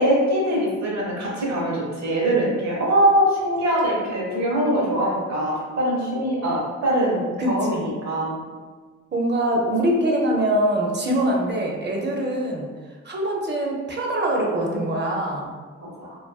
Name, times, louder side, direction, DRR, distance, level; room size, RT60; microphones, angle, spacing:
voice 1, 0.0-8.4 15.8-16.1, right 1 dB, 60° right, -4 dB, 0.9 m, -22 dB
voice 2, 7.4-7.8 9.1-12.7 13.0-15.5, right 1 dB, 35° right, -1 dB, 0.5 m, -23 dB
2.4 x 2.2 x 2.3 m, 1.4 s
cardioid pair, 65°, 31 cm